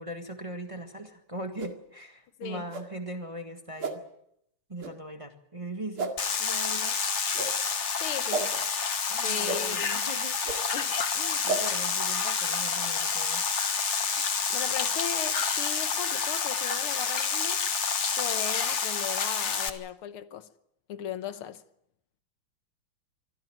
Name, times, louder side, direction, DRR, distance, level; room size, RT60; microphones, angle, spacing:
voice 1, 0.0-4.0 4.7-6.1 6.4-7.0 9.1-10.4 11.4-13.4, right 1 dB, 15° right, 1.5 m, -40 dB
sound 1, 1.6-1.7 2.7-2.8 3.8-3.9 4.8-4.9 6.0-6.1 7.3-7.5 8.3-8.4 9.4-9.6 10.4-10.6 11.4-11.6, right 4 dB, 75° right, 3.0 m, -31 dB
sound 2, 6.2-19.7, left 5 dB, 40° left, 1.3 m, -28 dB
voice 2, 8.0-8.7 9.2-10.1 10.7-11.4 14.1-14.2 14.5-17.6 18.2-20.5 20.9-21.6, left 9 dB, 80° left, 1.9 m, -37 dB
24.5 x 15.0 x 9.1 m
omnidirectional pair, 2.4 m